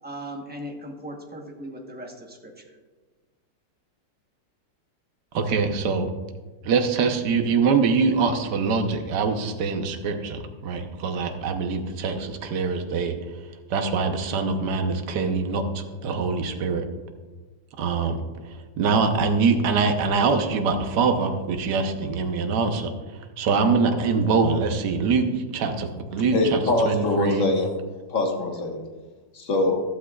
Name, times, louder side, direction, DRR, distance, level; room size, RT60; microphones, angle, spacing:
voice 1, 0.0-2.7, equal, 10° right, 2 dB, 0.7 m, -38 dB
voice 2, 5.3-6.1 6.6-13.2 13.7-16.9 17.8-22.9 23.4-26.6 26.8-27.4, right 4 dB, 70° right, 6 dB, 1.5 m, -24 dB
voice 3, 26.3-27.7 28.1-28.8 29.3-29.8, left 2 dB, 45° left, 2 dB, 1.7 m, -23 dB
13.0 x 12.5 x 2.4 m, 1.3 s
omnidirectional pair, 2.0 m